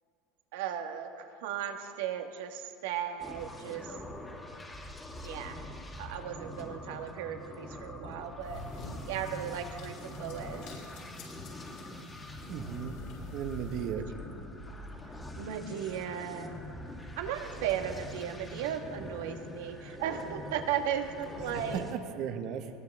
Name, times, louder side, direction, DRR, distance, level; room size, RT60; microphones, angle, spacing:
voice 1, 0.5-3.9 5.2-5.6 6.0-8.6 9.1-10.6 15.4-16.5 17.2-21.8, right 9 dB, 85° right, 5 dB, 1.5 m, -36 dB
sound 1, 3.2-21.9, left 1 dB, 15° left, 2.3 m, -44 dB
sound 2, 8.4-13.9, left 3 dB, 60° left, 5.1 m, -49 dB
voice 2, 12.5-13.0 13.3-14.0 21.7-22.7, right 8 dB, 55° right, 7 dB, 1.3 m, -35 dB
21.0 x 19.0 x 3.5 m, 2.5 s
supercardioid pair, 125°, 0 cm